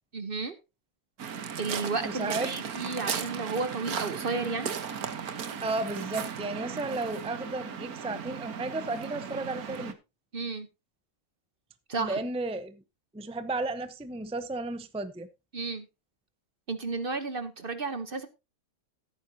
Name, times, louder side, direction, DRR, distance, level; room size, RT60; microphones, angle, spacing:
voice 1, 0.1-0.6 1.6-4.8 10.3-10.7 11.9-12.2 15.5-15.9 16.7-18.3, right 3 dB, 45° right, 1.1 m, -33 dB
Waves surf, 1.2-9.9, right 7 dB, 85° right, 1.7 m, -36 dB
voice 2, 2.0-2.5 5.6-9.9 12.0-12.8 13.1-15.3, right 2 dB, 5° right, 0.7 m, -33 dB
16.0 x 9.1 x 2.8 m
omnidirectional pair, 1.5 m